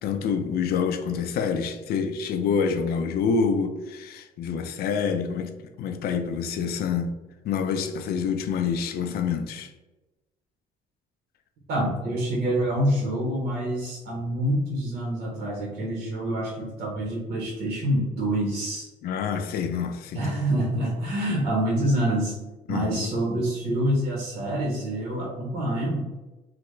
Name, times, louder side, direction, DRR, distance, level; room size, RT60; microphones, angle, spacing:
voice 1, 0.0-5.5 5.8-7.1 7.4-9.7 19.0-20.2 22.7-23.1, left 6 dB, 65° left, 0.4 m, -27 dB
voice 2, 11.7-18.9 20.1-22.4 22.7-26.2, right 1 dB, 70° right, 0.8 m, -26 dB
3.3 x 2.1 x 3.0 m
cardioid pair, 110°, 17 cm